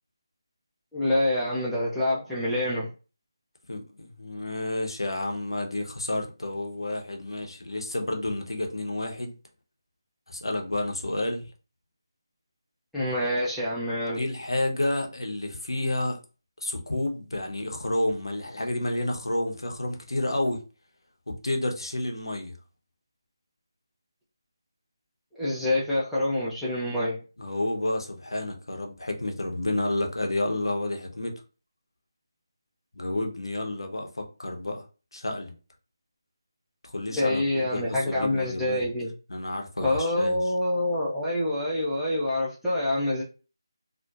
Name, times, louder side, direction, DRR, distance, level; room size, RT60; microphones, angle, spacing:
voice 1, 0.9-2.9 12.9-14.3 25.4-27.2 37.2-39.1 39.8-43.2, left 1 dB, ahead, 0.5 m, -26 dB
voice 2, 3.7-9.3 10.3-11.4 14.1-16.2 16.6-20.6 21.3-22.5 27.4-31.4 32.9-34.8 35.1-35.5 36.8-38.8 39.3-40.4, left 1 dB, 75° left, 0.6 m, -30 dB
2.7 x 2.1 x 2.3 m
figure-of-eight pair, 160°, 2 cm